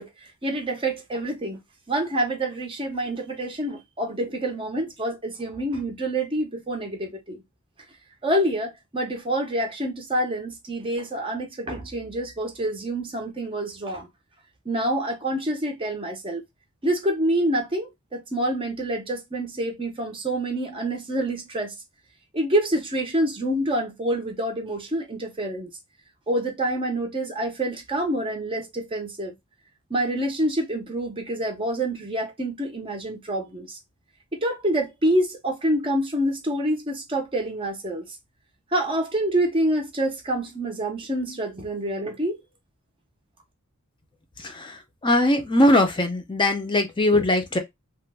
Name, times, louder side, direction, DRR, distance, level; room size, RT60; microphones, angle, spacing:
voice 1, 0.0-1.6 1.9-7.4 8.2-14.1 14.7-16.4 16.8-21.7 22.3-25.7 26.3-29.3 29.9-33.8 34.3-38.0 38.7-42.4, right 1 dB, 25° right, 0.5 m, -27 dB
voice 2, 44.4-47.6, left 1 dB, 20° left, 0.5 m, -21 dB
2.9 x 2.0 x 3.3 m
head